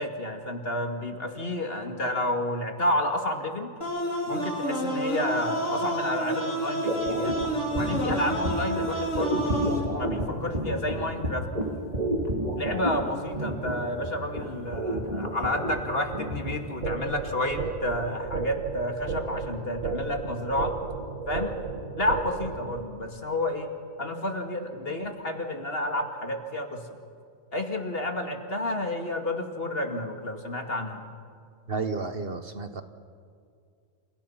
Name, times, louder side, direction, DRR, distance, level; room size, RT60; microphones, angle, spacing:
voice 1, 0.0-3.7 4.3-7.4 7.7-11.8 12.5-20.7 21.3-21.5 22.0-23.7 24.0-26.8 27.5-31.0, left 1 dB, 50° left, 4 dB, 2.5 m, -30 dB
sound 1, 3.8-9.8, right 1 dB, 70° left, 4.5 m, -29 dB
sound 2, 6.8-16.8, right 1 dB, 30° right, 2.9 m, -31 dB
sound 3, 16.8-22.8, right 4 dB, 75° right, 2.1 m, -33 dB
voice 2, 31.7-32.8, right 4 dB, 50° right, 9 dB, 1.3 m, -31 dB
29.0 x 29.0 x 5.8 m, 2.3 s
omnidirectional pair, 1.3 m